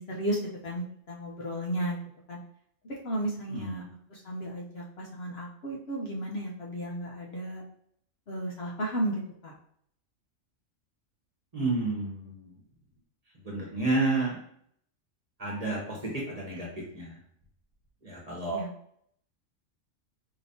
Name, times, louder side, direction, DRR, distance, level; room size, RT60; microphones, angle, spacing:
voice 1, 0.0-2.0 2.3-2.4 3.0-3.8 4.1-7.6 8.3-9.5 18.5-18.7, right 1 dB, 55° left, -2 dB, 1.0 m, -34 dB
voice 2, 3.5-3.8 11.5-12.4 13.5-14.4 15.4-17.2 18.0-18.6, right 2 dB, 35° right, -3 dB, 1.0 m, -30 dB
5.0 x 2.9 x 2.7 m, 0.67 s
omnidirectional pair, 1.3 m